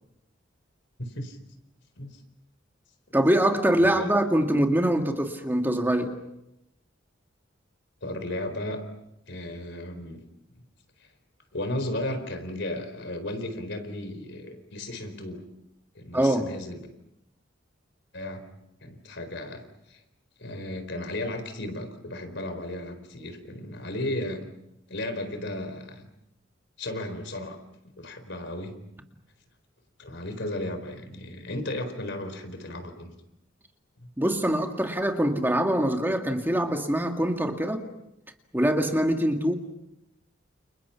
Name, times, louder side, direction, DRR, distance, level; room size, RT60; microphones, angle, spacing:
voice 1, 1.0-1.4 2.0-2.2 3.1-3.2 3.8-4.1 8.0-8.8 9.3-10.2 11.5-15.4 15.9-16.9 18.1-18.4 18.8-20.0 20.4-24.4 24.9-26.1 26.8-28.7 30.0-33.1 34.0-34.1, left 1 dB, 65° left, 8 dB, 4.5 m, -35 dB
voice 2, 3.1-6.1 16.1-16.5 34.2-37.9 38.5-39.5, right 1 dB, 10° right, 4 dB, 1.9 m, -24 dB
29.5 x 29.5 x 5.8 m, 0.85 s
head